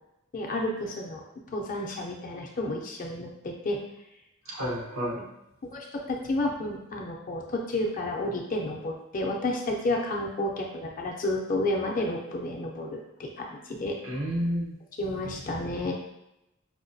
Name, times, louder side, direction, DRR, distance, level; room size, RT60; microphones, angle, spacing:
voice 1, 0.3-1.2 1.5-3.8 4.5-4.6 5.2-5.3 5.6-14.0 15.0-15.9, left 1 dB, 40° left, 0 dB, 0.5 m, -31 dB
voice 2, 4.5-5.2 14.0-14.7, equal, 80° right, -2 dB, 0.9 m, -30 dB
4.8 x 2.2 x 2.6 m, 0.87 s
head